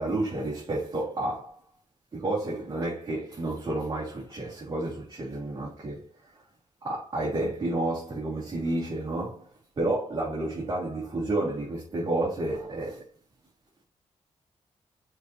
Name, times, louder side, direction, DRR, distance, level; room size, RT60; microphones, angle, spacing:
voice 1, 0.0-1.6 2.1-6.1 6.8-9.5 9.8-13.1, right 2 dB, 35° right, 2.6 m, -30 dB
7.1 x 4.7 x 3.1 m
wide cardioid pair, 130°, 12 cm